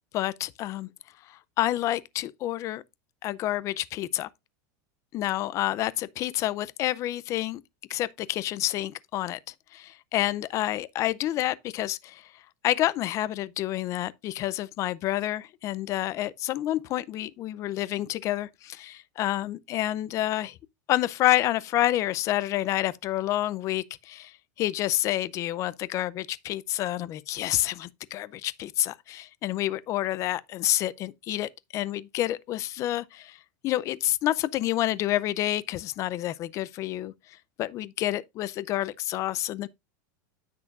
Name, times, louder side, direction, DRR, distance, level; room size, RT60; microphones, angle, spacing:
voice 1, 0.1-0.9 1.3-2.8 3.2-4.3 5.1-7.6 7.9-9.4 9.7-12.2 12.6-20.6 20.9-33.4 33.6-37.1 37.6-39.7, left 14 dB, 30° left, 0.5 m, -28 dB
9.8 x 7.5 x 2.4 m
supercardioid pair, 155°, 10 cm